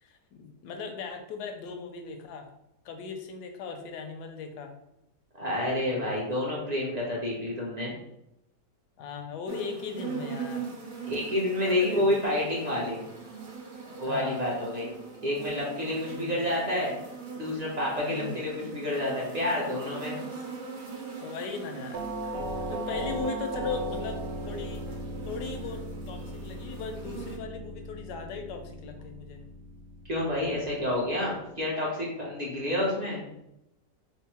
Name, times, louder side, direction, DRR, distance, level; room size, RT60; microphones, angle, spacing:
voice 1, 0.0-2.5 2.8-4.7 5.9-6.1 9.0-10.6 11.7-12.1 13.8-14.5 16.1-16.4 18.0-18.4 20.3-20.4 21.2-22.4 22.7-24.8 25.2-29.4, left 5 dB, 75° left, 5 dB, 1.1 m, -38 dB
voice 2, 5.3-7.9 11.1-13.0 14.0-14.9 15.2-16.9 17.3-20.2 30.1-33.2, left 1 dB, 35° right, -4 dB, 0.6 m, -29 dB
sound 1, 9.5-27.4, right 5 dB, 70° right, 1.4 m, -41 dB
Doorbell, 21.9-30.8, right 1 dB, 90° right, 1.3 m, -37 dB
3.5 x 2.0 x 4.1 m, 0.83 s
omnidirectional pair, 1.9 m